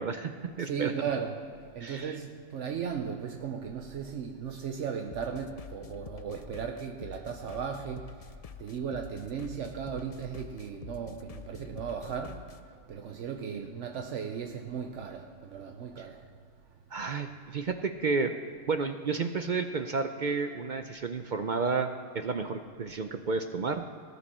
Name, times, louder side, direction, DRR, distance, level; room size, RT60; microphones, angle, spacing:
voice 1, 0.0-0.9 1.8-2.2 13.5-13.7 16.9-18.3 18.7-23.9, right 4 dB, 55° right, 0.6 m, -31 dB
voice 2, 0.6-16.3, right 7 dB, 70° right, 1.0 m, -36 dB
sound 1, 5.1-12.6, left 7 dB, 75° left, 0.3 m, -47 dB
18.5 x 10.0 x 4.3 m
omnidirectional pair, 1.3 m